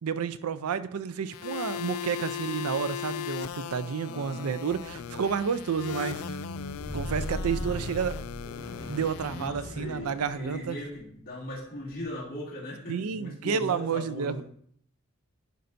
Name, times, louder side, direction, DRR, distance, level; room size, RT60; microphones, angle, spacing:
voice 1, 0.0-6.4 6.9-8.2 8.9-10.8 12.9-14.4, right 6 dB, 90° right, 13 dB, 0.4 m, -30 dB
sound 1, 1.3-9.5, left 10 dB, 80° left, 0.3 m, -38 dB
voice 2, 4.0-4.5 9.2-14.4, left 1 dB, 40° left, -4 dB, 2.3 m, -39 dB
Squeak, 4.7-11.0 11.8-11.9, equal, 65° left, 1.3 m, -39 dB
11.0 x 5.2 x 2.6 m, 0.62 s
head